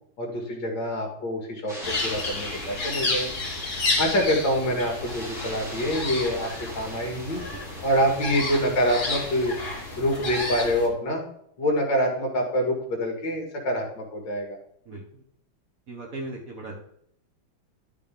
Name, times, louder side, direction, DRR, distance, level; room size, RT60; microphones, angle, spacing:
voice 1, 0.2-3.3 4.0-6.5 6.7-7.4 7.8-9.5 10.0-11.2 11.6-14.6, equal, 60° left, 1 dB, 2.5 m, -26 dB
sound 1, 1.7-10.0, equal, ahead, 2.2 m, -42 dB
sound 2, 1.8-10.9, left 2 dB, 40° left, 2.7 m, -31 dB
voice 2, 14.9-15.2 15.9-16.8, right 2 dB, 45° right, -1 dB, 1.5 m, -38 dB
11.0 x 6.7 x 3.5 m, 0.69 s
omnidirectional pair, 2.4 m